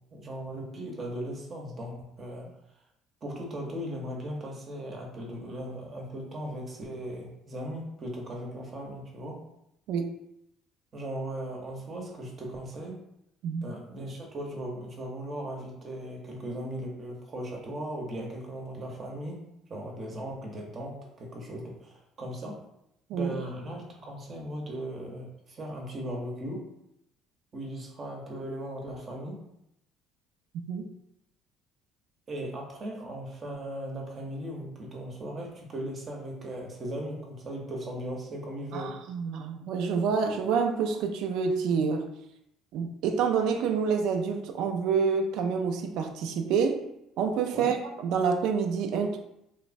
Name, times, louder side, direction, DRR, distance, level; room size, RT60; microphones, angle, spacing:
voice 1, 0.1-2.5 3.2-9.4 10.9-13.0 13.6-22.6 23.1-26.7 27.5-29.4 32.3-39.0 47.5-47.8, right 1 dB, 40° right, 0 dB, 0.7 m, -38 dB
voice 2, 38.7-42.1 42.7-46.8 47.2-49.2, right 6 dB, 75° right, 5 dB, 0.3 m, -27 dB
3.0 x 2.0 x 2.5 m, 0.81 s
supercardioid pair, 90°, 0 cm